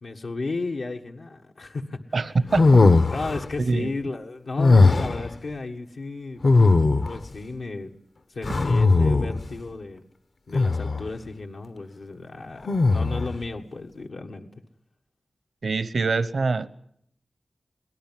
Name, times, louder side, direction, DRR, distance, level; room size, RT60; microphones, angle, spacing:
voice 1, 0.0-2.3 3.1-6.4 7.1-7.9 8.3-10.0 10.5-14.5, left 3 dB, 85° left, 1 dB, 1.5 m, -34 dB
voice 2, 2.1-2.8 3.6-3.9 15.6-16.7, right 4 dB, 70° right, 15 dB, 0.8 m, -24 dB
sound 1, 2.5-3.5 4.6-5.3 6.4-7.3 8.4-9.5 10.5-11.1 12.7-13.4, left 3 dB, 60° left, 0.9 m, -18 dB
23.5 x 18.0 x 7.5 m, 0.70 s
wide cardioid pair, 95°, 0 cm